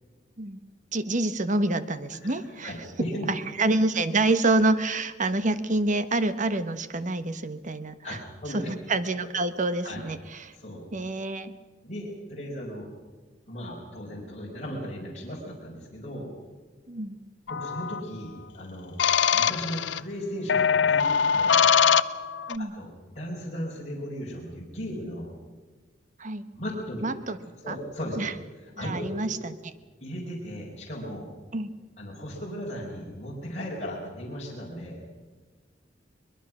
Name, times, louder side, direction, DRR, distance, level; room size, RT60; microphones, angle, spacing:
voice 1, 0.9-2.7 3.3-8.2 8.5-10.5 10.9-11.5 16.9-17.2 22.5-22.7 26.2-26.4 27.0-27.4 27.7-27.8 28.2-28.3 28.8-29.6 31.5-31.7, right 2 dB, 45° right, 12 dB, 1.2 m, -27 dB
voice 2, 2.6-3.3 8.0-8.7 9.2-9.3 9.8-10.0 10.5-10.9 11.8-12.9 13.5-16.3 17.5-18.9 19.3-21.6 22.6-25.3 26.5-27.0 27.6-28.2 28.8-29.1 30.0-31.3 32.0-35.0, equal, 40° left, -4 dB, 4.9 m, -36 dB
sound 1, 17.5-18.0 19.0-20.0 20.5-22.5, left 7 dB, 75° left, 0.6 m, -22 dB
22.5 x 21.5 x 6.2 m, 1.3 s
head